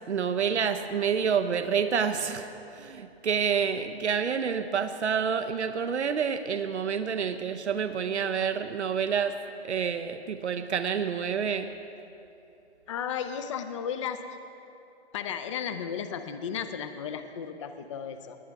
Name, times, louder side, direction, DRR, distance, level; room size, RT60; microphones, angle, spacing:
voice 1, 0.1-9.3 9.6-11.7, right 7 dB, 90° right, 8 dB, 0.7 m, -28 dB
voice 2, 12.9-14.4 15.1-18.4, left 7 dB, 30° left, 9 dB, 0.4 m, -34 dB
19.0 x 9.6 x 3.4 m, 2.8 s
hypercardioid pair, 140°, 33 cm